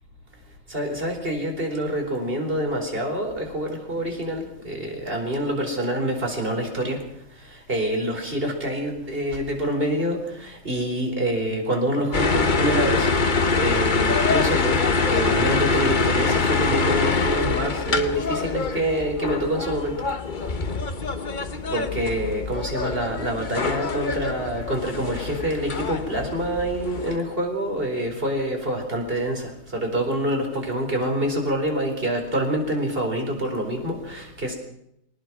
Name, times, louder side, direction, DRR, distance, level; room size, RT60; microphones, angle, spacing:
voice 1, 0.7-7.0 7.7-13.1 13.6-14.8 15.1-19.9 21.7-34.5, right 1 dB, 25° right, 2 dB, 4.5 m, -26 dB
sound 1, 12.1-27.2, left 4 dB, 35° left, 0.7 m, -24 dB
22.5 x 19.0 x 6.1 m, 0.77 s
omnidirectional pair, 2.2 m